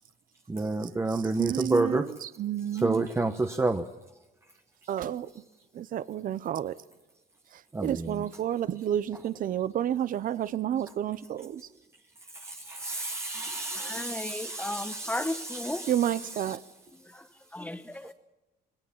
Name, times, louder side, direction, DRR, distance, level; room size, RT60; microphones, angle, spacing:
voice 1, 0.5-2.0 2.8-3.8 7.7-8.1 12.3-15.9, right 2 dB, 15° right, 1.0 m, -30 dB
voice 2, 1.1-3.1 4.9-5.4 5.7-6.8 7.5-11.7 15.9-16.6, right 10 dB, 55° right, 0.9 m, -30 dB
voice 3, 13.7-15.8 17.0-18.1, left 1 dB, 10° left, 1.2 m, -35 dB
20.5 x 18.0 x 7.4 m
cardioid pair, 110°, 17 cm